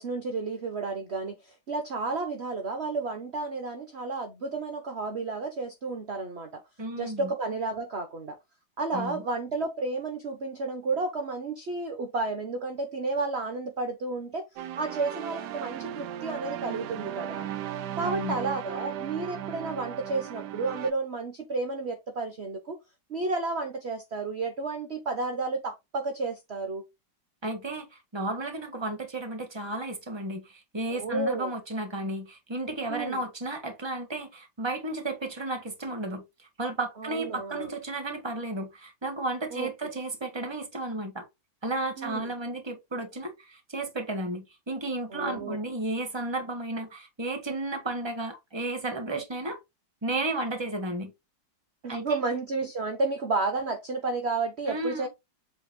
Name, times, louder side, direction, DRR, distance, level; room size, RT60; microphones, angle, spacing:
voice 1, 0.0-1.4 1.7-6.6 6.9-8.3 8.8-14.4 14.8-17.5 18.0-22.8 23.1-26.8 30.9-31.5 32.9-33.2 37.0-37.7 39.5-39.9 42.0-42.3 45.1-45.6 51.8-55.1, right 3 dB, 40° right, 1.2 m, -31 dB
voice 2, 6.8-7.3 8.9-9.2 18.0-18.4 27.4-27.9 28.1-36.2 36.6-41.2 41.6-49.6 50.0-51.1 51.9-52.2 54.7-55.1, right 2 dB, 15° right, 1.5 m, -33 dB
sound 1, 14.6-20.9, right 10 dB, 70° right, 1.2 m, -36 dB
7.8 x 3.5 x 3.7 m
omnidirectional pair, 2.0 m